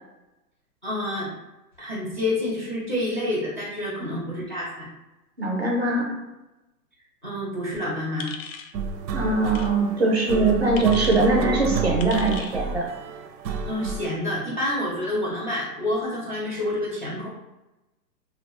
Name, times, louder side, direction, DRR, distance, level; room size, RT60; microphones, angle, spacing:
voice 1, 0.8-1.3 1.8-4.9 7.2-8.3 13.6-17.3, left 1 dB, 30° left, -5 dB, 0.4 m, -28 dB
voice 2, 5.4-6.0 9.1-12.8, right 2 dB, 45° right, -1 dB, 0.4 m, -22 dB
sound 1, 8.2-8.7 9.5-9.7 10.8-11.3 12.0-12.6, left 6 dB, 85° left, 0.6 m, -38 dB
sound 2, 8.7-14.1, right 5 dB, 90° right, 0.6 m, -29 dB
2.6 x 2.1 x 2.9 m, 1.0 s
hypercardioid pair, 180°, 49 cm